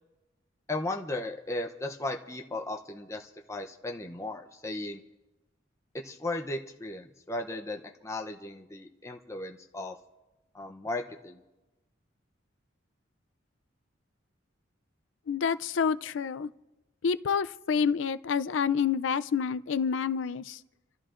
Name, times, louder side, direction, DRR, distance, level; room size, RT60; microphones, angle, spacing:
voice 1, 0.7-5.0 5.9-9.9 10.5-11.4, left 2 dB, 15° left, 1 dB, 0.6 m, -36 dB
voice 2, 15.3-16.5 17.0-20.6, left 6 dB, 70° left, 14 dB, 0.4 m, -28 dB
29.0 x 13.5 x 2.5 m, 1.1 s
head